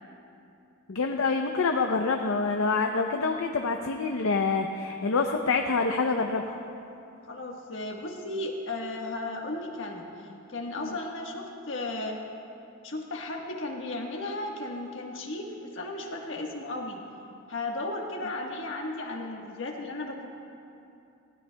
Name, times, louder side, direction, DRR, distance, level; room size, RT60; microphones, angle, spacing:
voice 1, 0.9-6.6 10.8-11.0, left 4 dB, 90° left, 4 dB, 0.6 m, -26 dB
voice 2, 7.3-12.2 12.8-17.0 17.5-20.3, left 2 dB, 65° left, 1 dB, 1.3 m, -35 dB
19.5 x 16.0 x 2.2 m, 2.7 s
head